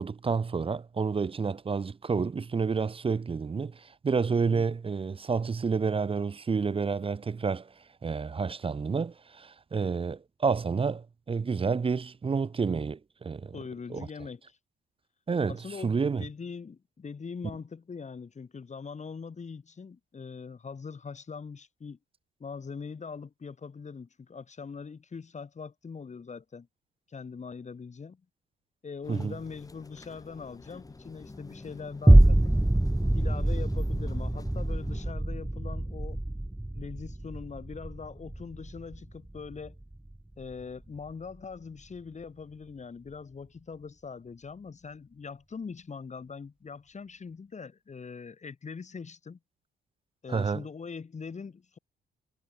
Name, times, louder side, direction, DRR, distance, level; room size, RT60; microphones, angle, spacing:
voice 1, 0.0-7.7 8.0-13.6 13.9-14.1 15.3-15.6 15.8-16.2 29.1-29.3 50.3-50.6, right 5 dB, 25° right, 0.8 m, -29 dB
voice 2, 13.5-14.6 15.5-22.0 22.4-26.7 27.1-28.2 28.8-32.5 33.1-36.2 36.7-39.8 40.4-49.4 50.2-51.8, left 5 dB, 35° left, 4.6 m, -42 dB
sound 1, 29.0-35.1, left 3 dB, 15° left, 2.3 m, -47 dB
sound 2, 32.1-40.6 41.1-41.2, right 1 dB, 5° right, 0.5 m, -25 dB
cardioid pair, 90°, 20 cm